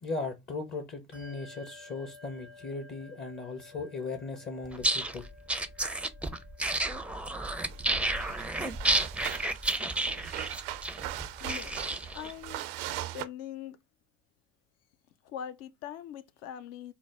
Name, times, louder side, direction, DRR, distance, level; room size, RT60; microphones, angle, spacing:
voice 1, 0.0-5.3, left 3 dB, 35° left, 0.9 m, -37 dB
Bell, 1.1-11.1, left 3 dB, 85° left, 1.6 m, -55 dB
sound 1, 4.7-12.3, right 2 dB, 5° right, 0.5 m, -31 dB
sound 2, 7.7-7.8 8.2-13.3, right 14 dB, 70° right, 0.5 m, -40 dB
voice 2, 11.4-12.6 13.1-13.8 15.2-16.9, left 10 dB, 55° left, 0.6 m, -42 dB
4.6 x 2.1 x 3.4 m
hypercardioid pair, 60°, 31 cm